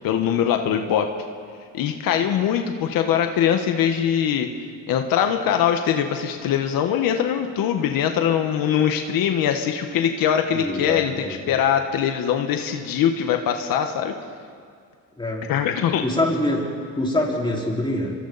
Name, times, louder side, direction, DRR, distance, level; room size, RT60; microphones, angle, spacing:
voice 1, 0.0-1.1 1.7-4.5 4.9-14.1 15.5-16.0, left 9 dB, 85° left, 5 dB, 1.4 m, -22 dB
voice 2, 10.5-11.4 15.2-15.5 16.0-16.6 17.0-18.1, left 1 dB, 15° left, -3 dB, 4.8 m, -24 dB
27.0 x 23.5 x 4.2 m, 2.2 s
cardioid pair, 100°, 34 cm